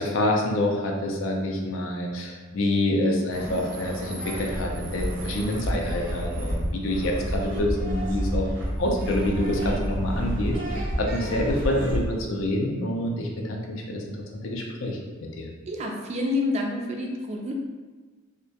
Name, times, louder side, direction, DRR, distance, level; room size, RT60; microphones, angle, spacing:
voice 1, 0.0-8.5 8.8-14.0 14.4-15.0 15.4-15.5, left 1 dB, 75° left, 0 dB, 0.4 m, -27 dB
sound 1, 3.3-12.1, equal, 65° right, 0.7 m, -30 dB
voice 2, 15.7-17.5, left 2 dB, 35° right, 1 dB, 0.3 m, -28 dB
2.2 x 2.1 x 2.7 m, 1.4 s
head